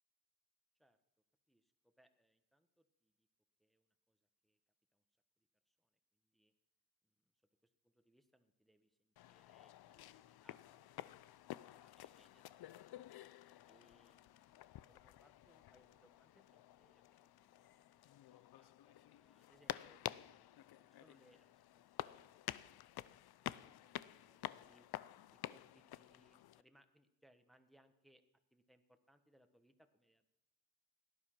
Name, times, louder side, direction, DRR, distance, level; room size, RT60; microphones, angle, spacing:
voice 1, 1.5-3.3 3.6-4.6 4.9-5.0 5.4-6.5 7.0-7.3 7.6-13.2 13.7-20.3 20.8-22.3 22.6-24.9 25.3-28.2 28.5-30.3, equal, ahead, 8 dB, 1.2 m, -73 dB
sound 1, 9.2-26.6, left 13 dB, 75° left, 0.6 m, -51 dB
17.5 x 11.0 x 5.9 m, 0.96 s
cardioid pair, 115°, 38 cm